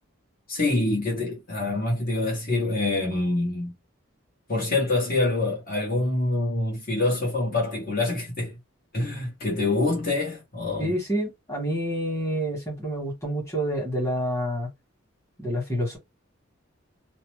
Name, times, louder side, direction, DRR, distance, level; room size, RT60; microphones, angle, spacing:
voice 1, 0.5-3.7 4.5-8.5 8.9-10.9, left 2 dB, 45° left, 1.2 m, -26 dB
voice 2, 10.8-14.7 15.4-16.0, equal, 15° left, 1.4 m, -28 dB
2.7 x 2.0 x 3.1 m
head